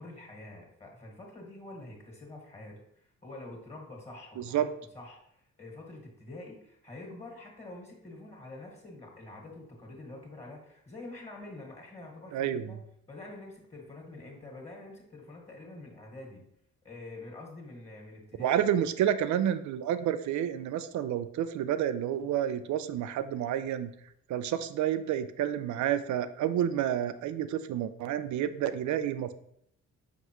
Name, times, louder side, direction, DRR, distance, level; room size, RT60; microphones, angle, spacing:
voice 1, 0.0-12.8 13.1-16.5 16.8-18.6, left 2 dB, 20° left, 0 dB, 1.8 m, -46 dB
voice 2, 4.4-4.7 12.3-12.8 18.4-23.9 24.3-29.3, right 10 dB, 70° right, 12 dB, 0.5 m, -29 dB
5.9 x 5.2 x 3.1 m, 0.71 s
cardioid pair, 90°, 30 cm